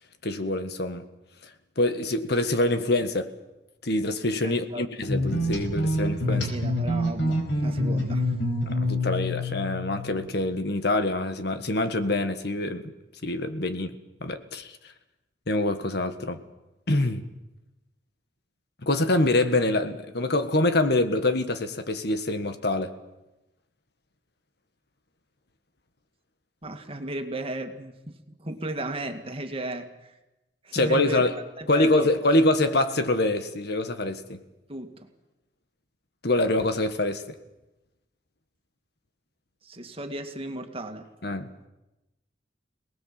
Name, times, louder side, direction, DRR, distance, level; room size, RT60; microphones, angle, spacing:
voice 1, 0.2-1.0 1.8-3.3 3.8-6.5 8.7-12.9 13.2-14.8 15.5-16.4 16.9-17.2 18.8-22.9 30.7-31.3 31.7-34.4 36.2-37.2 41.2-41.5, left 2 dB, 65° left, 1.7 m, -25 dB
voice 2, 4.4-4.8 6.3-8.3 26.6-30.1 30.6-31.2 31.6-32.3 34.7-35.1 39.6-41.1, right 1 dB, 30° right, 2.1 m, -35 dB
sound 1, 5.1-10.3, left 1 dB, 85° left, 4.8 m, -27 dB
27.0 x 19.5 x 7.6 m
head